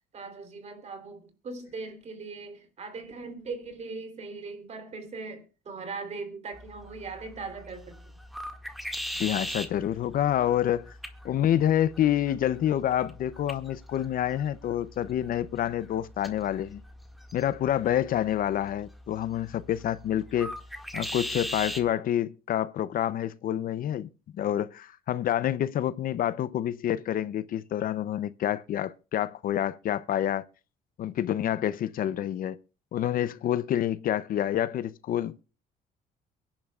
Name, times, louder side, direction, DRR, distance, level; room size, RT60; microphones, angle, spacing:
voice 1, 0.1-8.2, right 4 dB, 40° right, 3.5 m, -40 dB
sound 1, 6.5-21.9, equal, ahead, 1.9 m, -41 dB
voice 2, 9.2-10.9 11.2-16.8 17.3-20.6 20.9-30.4 31.0-32.6 32.9-35.4, left 11 dB, 55° left, 0.7 m, -28 dB
23.5 x 10.5 x 2.4 m
cardioid pair, 110°, 17 cm